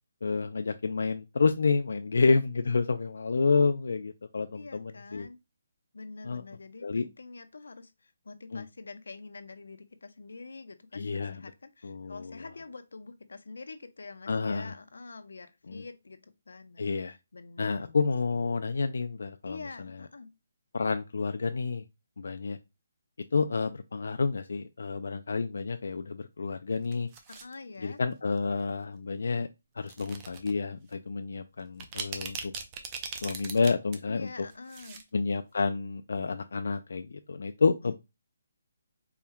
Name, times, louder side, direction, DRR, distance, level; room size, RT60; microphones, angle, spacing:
voice 1, 0.2-5.3 6.2-6.4 6.8-7.1 8.5-8.6 10.9-11.4 11.8-12.4 14.3-14.7 15.7-15.8 16.8-17.2 17.6-20.0 20.7-21.8 22.2-22.6 23.3-27.1 27.8-29.5 29.8-32.5 33.2-34.3 35.1-37.9, left 4 dB, 60° left, 0.3 m, -29 dB
voice 2, 4.5-5.4 5.9-16.9 17.3-18.0 19.4-20.3 27.3-28.0 34.1-35.0 37.8-37.9, left 3 dB, 90° left, 0.7 m, -46 dB
sound 1, 26.8-27.5 28.4-28.6 29.8-30.5 30.9-31.0 31.6-34.0 34.3-35.0 35.3-35.4, right 6 dB, 15° right, 0.4 m, -39 dB
4.4 x 2.1 x 3.5 m
hypercardioid pair, 180°, 0 cm